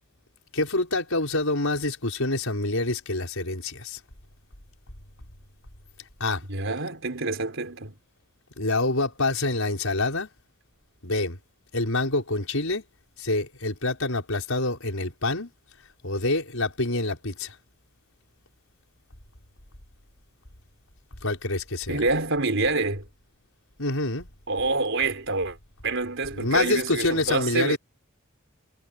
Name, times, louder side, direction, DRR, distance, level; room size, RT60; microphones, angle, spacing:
voice 1, 0.5-4.0 6.2-6.4 8.6-10.3 11.0-11.4 11.7-12.8 13.2-15.5 16.0-17.5 21.2-22.0 23.8-24.3 26.3-27.8, left 2 dB, 75° left, 5.6 m, -26 dB
voice 2, 6.5-7.9 21.9-23.1 24.5-25.6 25.8-27.8, right 3 dB, 65° right, 4.5 m, -27 dB
head